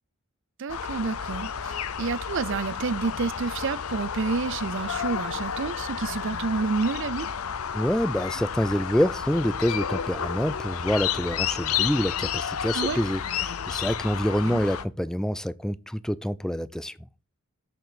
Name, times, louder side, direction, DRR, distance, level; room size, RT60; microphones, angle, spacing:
voice 1, 0.6-7.3 12.7-13.0 14.4-14.6, right 4 dB, 60° right, 0.5 m, -29 dB
sound 1, 0.7-14.8, left 8 dB, 80° left, 0.7 m, -31 dB
voice 2, 7.7-16.9, equal, 5° left, 0.4 m, -26 dB
6.9 x 6.7 x 7.7 m
head